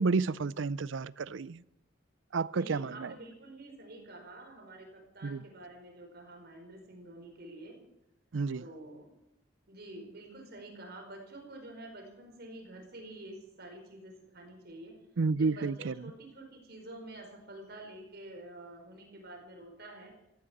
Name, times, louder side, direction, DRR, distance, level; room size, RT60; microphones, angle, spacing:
voice 1, 0.0-1.6 2.3-3.1 5.2-5.4 8.3-8.6 15.2-15.9, right 4 dB, 85° right, 0.5 m, -30 dB
voice 2, 2.6-7.8 8.6-9.1 9.7-14.9 15.4-20.1, right 1 dB, 55° right, 5.0 m, -48 dB
15.0 x 13.0 x 7.3 m
head